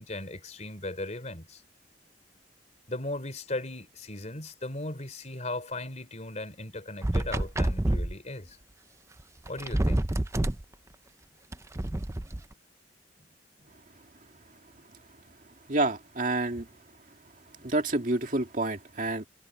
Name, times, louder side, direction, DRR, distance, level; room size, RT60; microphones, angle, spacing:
voice 1, 0.0-1.6 2.9-8.6 9.5-10.1, left 2 dB, 40° left, 3.9 m, -37 dB
sound 1, 7.0-8.1 9.2-9.3 9.5-10.6 11.5-12.4, right 1 dB, 15° right, 0.6 m, -27 dB
voice 2, 15.7-16.7 17.6-19.3, right 2 dB, 50° right, 2.4 m, -28 dB
head